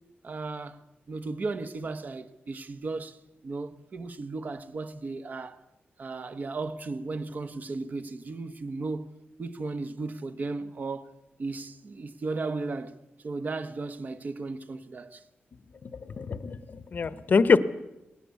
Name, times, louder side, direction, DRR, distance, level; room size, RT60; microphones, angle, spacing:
voice 1, 0.2-5.6 6.0-9.1 9.4-11.1 11.4-12.9 13.2-15.2, right 3 dB, 45° right, 1.2 m, -35 dB
voice 2, 15.8-17.6, left 5 dB, 50° left, 0.8 m, -24 dB
19.5 x 18.0 x 8.4 m
wide cardioid pair, 140°, 4 cm